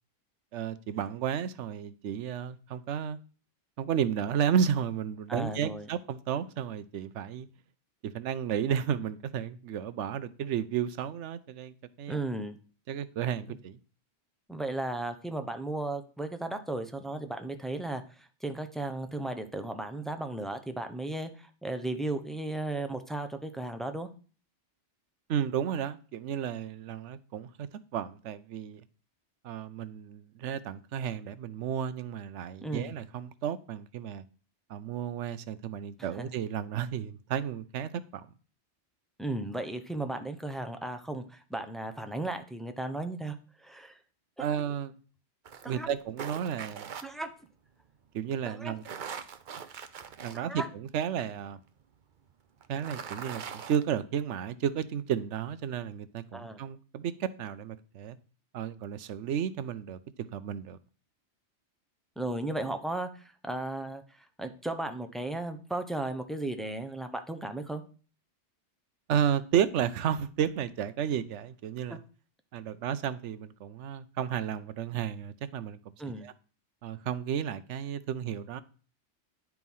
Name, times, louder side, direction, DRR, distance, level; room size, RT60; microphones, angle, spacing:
voice 1, 0.5-3.2 3.8-7.5 8.0-12.2 12.9-13.8 25.3-28.8 29.4-34.2 34.7-38.3 44.4-45.0 45.7-46.9 48.1-48.8 50.2-51.6 52.7-58.2 58.5-60.8 69.1-72.0 72.5-75.8 76.2-76.3 76.8-78.6, right 8 dB, 85° right, 1.0 m, -32 dB
voice 2, 5.3-5.9 12.1-12.6 13.5-13.6 14.5-24.1 32.6-32.9 36.1-36.3 39.2-44.0 44.4-44.5 45.6-45.9 47.0-47.3 48.4-48.7 50.3-50.7 56.3-56.6 62.2-67.8 71.9-72.0 76.0-76.3, right 2 dB, ahead, 0.6 m, -35 dB
sound 1, 45.5-47.0 48.7-50.4 50.9-51.0 52.6-53.8, right 7 dB, 50° right, 0.7 m, -41 dB
10.0 x 4.7 x 5.4 m
omnidirectional pair, 1.2 m